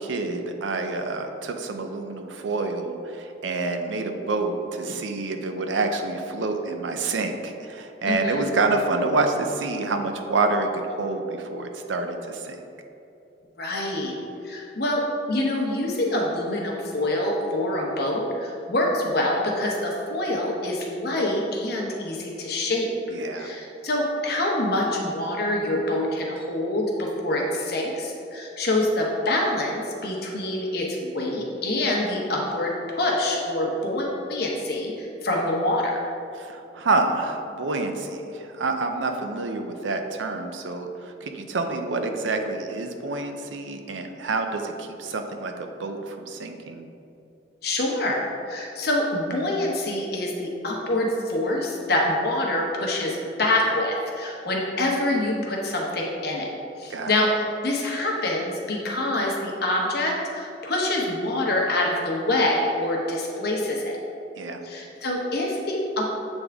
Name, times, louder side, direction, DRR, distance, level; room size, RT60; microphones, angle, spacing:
voice 1, 0.0-12.6 23.1-23.5 36.3-46.9 56.9-57.2 64.4-64.6, right 3 dB, 90° right, 5 dB, 0.5 m, -27 dB
voice 2, 8.1-8.5 13.6-14.1 14.4-15.0 15.3-22.9 23.3-36.0 47.6-48.2 48.5-56.5 56.8-57.3 57.6-64.0 64.6-66.0, left 1 dB, 55° left, -2 dB, 1.0 m, -26 dB
7.9 x 3.6 x 3.5 m, 2.8 s
head